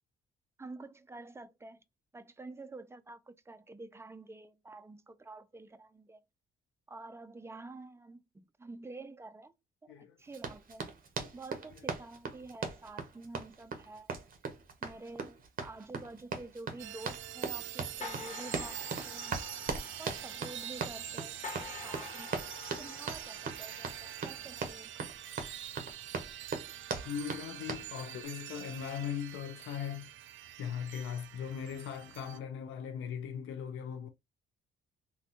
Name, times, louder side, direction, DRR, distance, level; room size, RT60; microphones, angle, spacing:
voice 1, 0.6-1.8 2.1-6.2 6.9-9.5 9.8-10.9 11.3-14.2 14.8-19.4 20.0-22.5 22.8-25.0, right 3 dB, 15° right, 0.4 m, -49 dB
Run, 10.3-27.9, right 5 dB, 45° right, 0.9 m, -40 dB
sound 1, 16.8-32.4, right 11 dB, 75° right, 0.4 m, -45 dB
sound 2, 18.0-24.9, left 5 dB, 35° left, 1.2 m, -48 dB
voice 2, 27.0-30.1 30.5-34.1, left 8 dB, 85° left, 0.5 m, -39 dB
3.4 x 2.3 x 2.8 m
cardioid pair, 90°, 20 cm